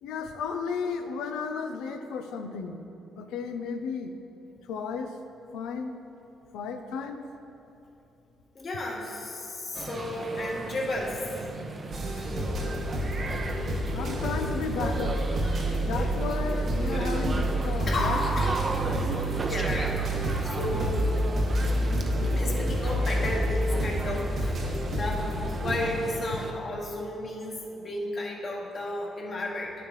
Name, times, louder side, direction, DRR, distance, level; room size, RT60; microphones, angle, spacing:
voice 1, 0.0-2.8 3.2-4.1 4.7-5.1 5.5-6.0 6.5-7.2 13.9-15.2 15.9-18.2, left 5 dB, 90° left, 7 dB, 0.5 m, -33 dB
sound 1, 4.9-19.7, left 2 dB, 70° left, 1.3 m, -42 dB
voice 2, 8.5-11.2 17.9-18.5 19.4-19.9 20.4-21.1 22.3-24.7 25.0-29.7, left 1 dB, 45° left, -2 dB, 1.4 m, -33 dB
sound 2, 9.7-26.5, right 3 dB, 35° right, 0.7 m, -36 dB
sound 3, 11.9-25.7, right 1 dB, 60° right, 1.9 m, -28 dB
10.0 x 6.9 x 3.2 m, 3.0 s
cardioid pair, 90°, 0 cm